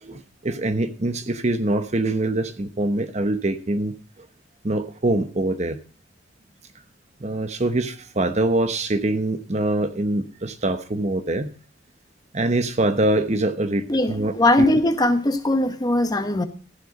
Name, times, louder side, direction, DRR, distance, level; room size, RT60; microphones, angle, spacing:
voice 1, 0.0-4.3 4.6-5.8 7.2-11.5 12.3-14.7, right 2 dB, 35° right, 1.0 m, -24 dB
voice 2, 13.9-16.4, left 1 dB, 20° left, 1.0 m, -20 dB
14.5 x 7.8 x 5.3 m
head